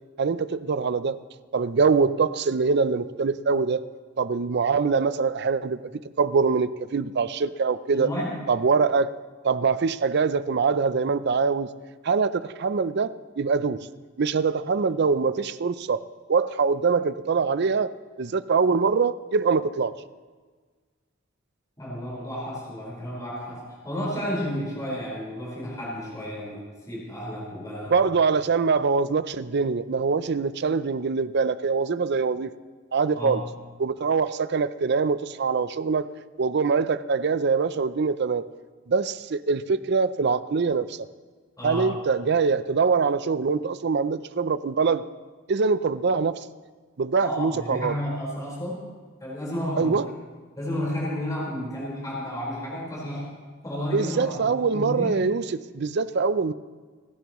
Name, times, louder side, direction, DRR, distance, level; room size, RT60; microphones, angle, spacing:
voice 1, 0.2-1.2 1.5-3.8 4.2-8.1 8.5-9.1 9.4-11.7 12.0-13.9 14.2-16.0 16.3-17.9 18.2-19.9 27.9-32.5 32.9-33.5 33.8-36.1 36.4-38.4 38.9-41.0 41.6-45.0 45.5-46.4 47.0-48.0 49.8-50.1 53.9-56.5, right 5 dB, 60° right, 14 dB, 0.5 m, -23 dB
voice 2, 7.9-8.3 21.8-27.9 33.2-33.4 41.6-41.9 47.2-48.8 49.2-50.0 50.6-53.3 53.6-55.2, equal, 20° left, -6 dB, 4.5 m, -32 dB
28.5 x 10.5 x 3.1 m, 1.5 s
head